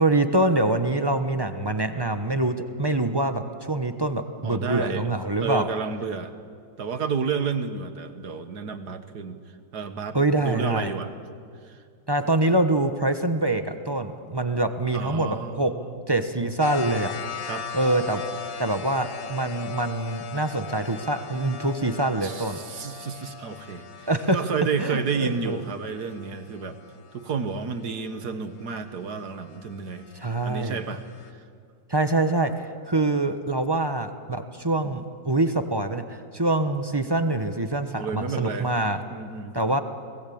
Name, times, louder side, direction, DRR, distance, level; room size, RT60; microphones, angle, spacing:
voice 1, 0.0-5.7 10.1-10.9 12.1-15.7 16.1-17.1 17.7-18.2 18.6-22.6 24.1-24.4 24.8-25.6 30.1-30.8 31.9-39.0 39.5-39.8, right 2 dB, 20° right, 8 dB, 0.6 m, -25 dB
voice 2, 4.4-5.1 5.4-6.3 6.8-11.1 11.6-11.8 14.9-16.0 17.4-17.7 22.2-26.8 27.1-30.1 30.4-31.5 37.9-38.7 39.1-39.6, right 5 dB, 55° right, 9 dB, 1.8 m, -31 dB
sound 1, 16.6-27.3 29.4-31.3, left 7 dB, 60° left, 1.9 m, -39 dB
30.0 x 19.5 x 8.6 m, 2.2 s
omnidirectional pair, 2.2 m